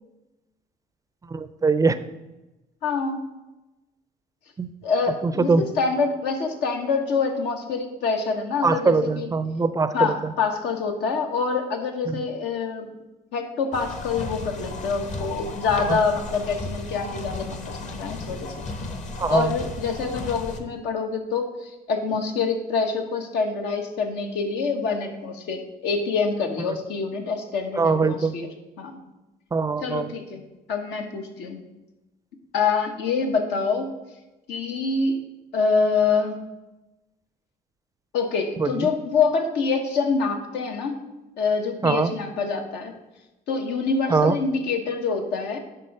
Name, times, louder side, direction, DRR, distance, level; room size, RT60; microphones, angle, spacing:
voice 1, 1.3-2.0 4.6-4.7 5.2-5.6 8.6-10.1 12.1-12.2 15.9-16.0 19.2-19.5 27.8-28.3 29.5-30.1 38.6-38.9 41.8-42.1 44.1-44.4, right 4 dB, 20° right, 13 dB, 0.4 m, -22 dB
voice 2, 2.8-3.2 4.8-9.3 9.9-12.9 13.3-18.5 19.3-28.5 28.8-29.0 29.8-30.4 30.7-31.6 32.5-33.9 34.5-35.2 35.5-36.5 38.1-41.0 41.4-42.9 43.5-45.6, left 4 dB, 85° left, 4 dB, 1.3 m, -26 dB
sound 1, 13.7-20.6, left 2 dB, 45° left, 1.1 m, -34 dB
10.5 x 3.9 x 5.4 m, 1.0 s
cardioid pair, 110°, 17 cm